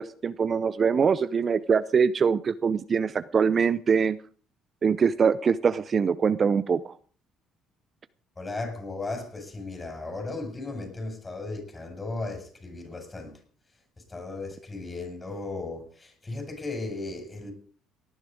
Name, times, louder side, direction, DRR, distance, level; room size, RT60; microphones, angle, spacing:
voice 1, 0.0-4.2 4.8-6.9, right 6 dB, 35° right, 14 dB, 0.6 m, -23 dB
voice 2, 8.4-13.4 14.0-17.5, left 3 dB, 20° left, 5 dB, 5.8 m, -36 dB
18.5 x 10.5 x 5.2 m, 0.43 s
cardioid pair, 105°, 0 cm